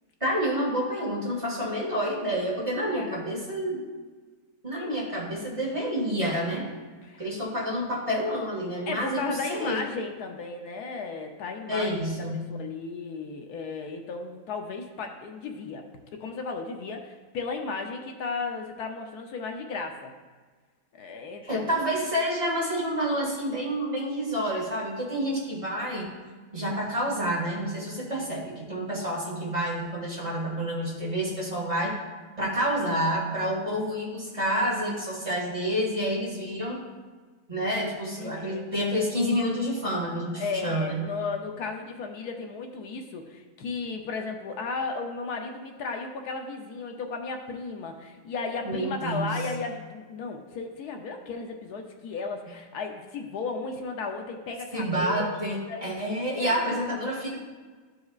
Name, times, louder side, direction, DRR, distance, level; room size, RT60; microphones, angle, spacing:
voice 1, 0.2-3.8 4.6-6.6 7.2-9.8 11.7-12.5 21.4-26.1 26.5-31.9 32.4-36.8 37.5-41.0 48.6-49.4 54.7-57.4, equal, 20° right, -6 dB, 1.9 m, -28 dB
voice 2, 8.9-12.0 12.6-15.8 16.2-20.1 21.0-21.7 38.2-38.7 40.3-55.3 55.7-55.9 56.4-56.8, left 4 dB, 75° left, 3 dB, 1.2 m, -34 dB
13.5 x 4.7 x 2.4 m, 1.4 s
omnidirectional pair, 1.7 m